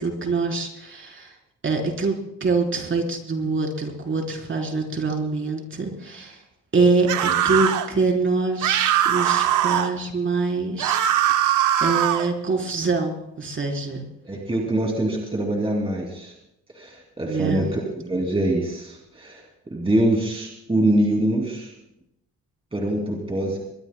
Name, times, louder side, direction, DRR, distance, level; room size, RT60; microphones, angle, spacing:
voice 1, 0.0-1.3 1.6-6.4 6.7-11.4 11.8-14.0 17.2-17.6, right 4 dB, 40° right, 1 dB, 3.8 m, -25 dB
sound 1, 7.1-7.9 8.6-9.9 10.8-12.3, right 11 dB, 85° right, 0.9 m, -21 dB
voice 2, 14.2-16.3 16.7-19.4 19.7-21.7 22.7-23.6, right 1 dB, 20° right, 0 dB, 2.7 m, -24 dB
22.5 x 21.5 x 2.2 m, 0.81 s
cardioid pair, 90°, 30 cm